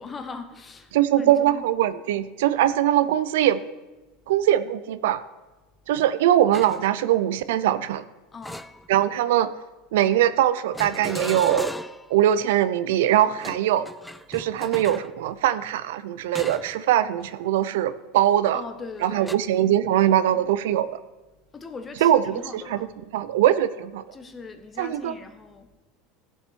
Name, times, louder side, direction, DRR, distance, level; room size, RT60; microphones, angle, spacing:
voice 1, 0.0-1.6 8.3-8.7 18.5-19.4 20.1-20.2 21.5-22.9 24.1-25.7, left 4 dB, 20° left, 9 dB, 0.9 m, -40 dB
voice 2, 0.9-3.6 4.3-5.2 5.9-8.0 8.9-9.5 9.9-11.7 12.1-13.9 14.3-18.6 19.0-20.9 22.0-22.9 23.1-24.0 24.8-25.1, right 12 dB, 85° right, 14 dB, 0.6 m, -21 dB
sound 1, 6.5-6.9 8.4-9.2 10.7-12.1 13.3-15.1 16.3-16.8 17.2-17.4 19.3-19.4, left 1 dB, ahead, 0.3 m, -36 dB
14.5 x 7.1 x 4.6 m, 1.1 s
supercardioid pair, 150°, 0 cm